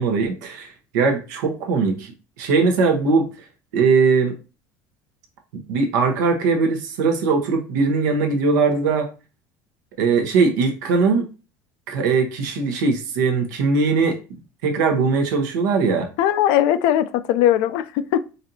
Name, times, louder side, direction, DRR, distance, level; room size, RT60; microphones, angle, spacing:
voice 1, 0.0-2.1 2.4-3.3 3.7-4.3 5.7-9.1 10.0-11.3 11.9-16.1, right 4 dB, 90° right, 0.8 m, -20 dB
voice 2, 16.2-18.2, left 11 dB, 75° left, 0.4 m, -19 dB
4.1 x 2.6 x 2.7 m
supercardioid pair, 95°, 9 cm